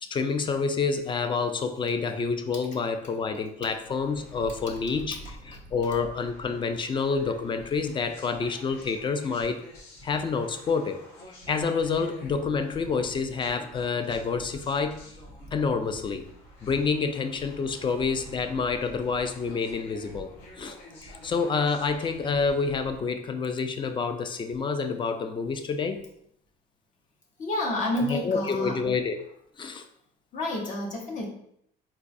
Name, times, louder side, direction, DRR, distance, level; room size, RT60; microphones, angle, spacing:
voice 1, 0.0-5.2 5.5-9.6 10.0-11.0 11.5-15.0 15.5-16.2 16.6-20.3 20.6-20.8 21.0-26.0 28.0-29.2 29.6-29.9, left 5 dB, 30° left, 7 dB, 0.3 m, -28 dB
sound 1, 3.8-23.0, equal, 85° left, 0.8 m, -47 dB
voice 2, 27.4-28.8 30.3-31.3, left 1 dB, 50° left, -2 dB, 0.9 m, -29 dB
3.9 x 2.3 x 2.5 m, 0.70 s
cardioid pair, 110°, 17 cm